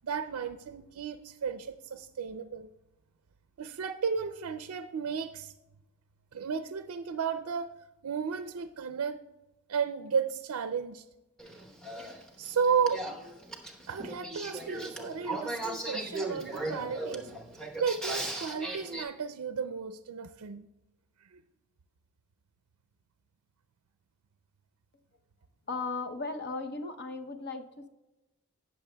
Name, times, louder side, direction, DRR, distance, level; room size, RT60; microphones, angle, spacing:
voice 1, 0.0-2.7 3.6-5.5 6.3-7.7 8.0-9.2 9.7-11.1 12.4-13.1 13.9-17.3 17.8-20.7 21.3-21.4, right 6 dB, 80° right, 9 dB, 0.4 m, -33 dB
Male speech man speaking / Female speech woman speaking / Conversation, 11.4-19.0, right 2 dB, 5° left, 0.9 m, -38 dB
voice 2, 25.7-27.9, left 3 dB, 50° left, 7 dB, 0.7 m, -36 dB
18.5 x 6.7 x 2.2 m, 1.1 s
head